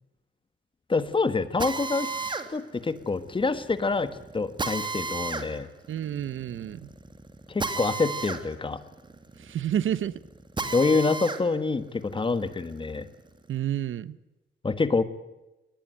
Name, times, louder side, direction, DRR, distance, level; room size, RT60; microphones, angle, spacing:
voice 1, 0.9-2.1 2.5-5.7 7.5-8.8 10.7-13.1 14.6-15.0, left 4 dB, 25° left, 13 dB, 1.5 m, -26 dB
Drill, 1.6-11.4 11.9-13.5, right 3 dB, 25° right, 2.3 m, -35 dB
voice 2, 5.9-6.9 9.4-10.1 13.5-14.2, right 10 dB, 85° right, 18 dB, 1.0 m, -29 dB
23.5 x 19.5 x 9.0 m, 1.0 s
wide cardioid pair, 145°, 20 cm